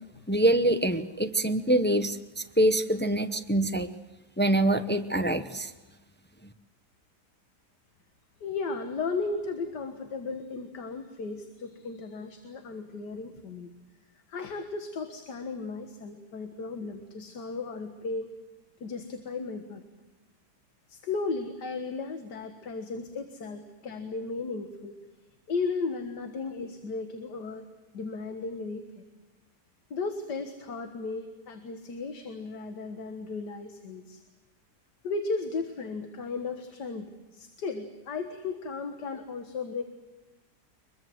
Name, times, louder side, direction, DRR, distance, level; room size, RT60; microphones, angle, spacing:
voice 1, 0.3-3.9 4.4-5.7, right 1 dB, 15° left, 8 dB, 0.3 m, -25 dB
voice 2, 8.4-13.7 14.3-18.3 18.8-19.8 20.9-25.0 25.5-27.6 27.9-29.0 29.9-34.2 35.0-39.8, left 4 dB, 80° left, 7 dB, 2.1 m, -35 dB
23.5 x 22.0 x 7.8 m, 1.2 s
omnidirectional pair, 1.8 m